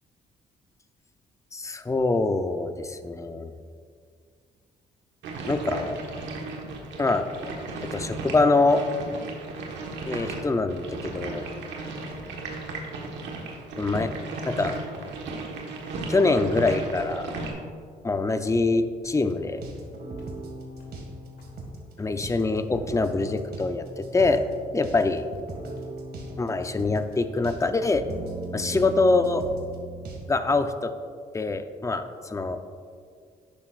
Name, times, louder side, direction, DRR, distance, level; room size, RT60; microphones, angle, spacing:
voice 1, 1.5-3.5 5.5-6.0 7.0-7.3 7.8-8.8 10.1-11.5 13.8-14.1 14.4-14.8 16.1-17.3 18.0-19.6 22.0-24.4 24.7-25.2 26.4-28.1 28.5-29.5 30.3-30.9 31.3-32.6, left 3 dB, 15° left, 9 dB, 0.6 m, -24 dB
sound 1, 5.2-17.5, right 3 dB, 80° right, 1.5 m, -35 dB
sound 2, 19.0-30.2, right 2 dB, 60° right, 2.1 m, -39 dB
Walk footsteps, 19.6-19.9 20.2-20.5 20.8-21.1 21.4-21.7 22.0-22.9 23.2-23.5 23.8-23.9 24.2-24.7 25.2-25.4 25.7-26.0, left 2 dB, 60° left, 2.2 m, -48 dB
11.5 x 9.5 x 2.5 m, 2.1 s
supercardioid pair, 70°, 18 cm